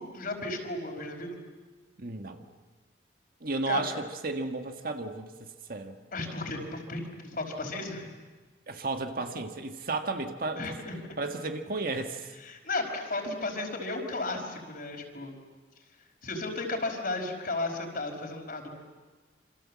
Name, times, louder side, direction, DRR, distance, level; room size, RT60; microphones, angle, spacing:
voice 1, 0.0-1.4 3.7-3.8 6.1-8.1 10.6-11.2 12.4-15.3 16.2-18.8, left 2 dB, 50° left, 3 dB, 5.1 m, -34 dB
voice 2, 2.0-2.5 3.4-6.0 8.7-10.8 11.2-12.3, right 3 dB, 50° right, 5 dB, 1.7 m, -33 dB
27.5 x 27.0 x 7.5 m, 1.3 s
head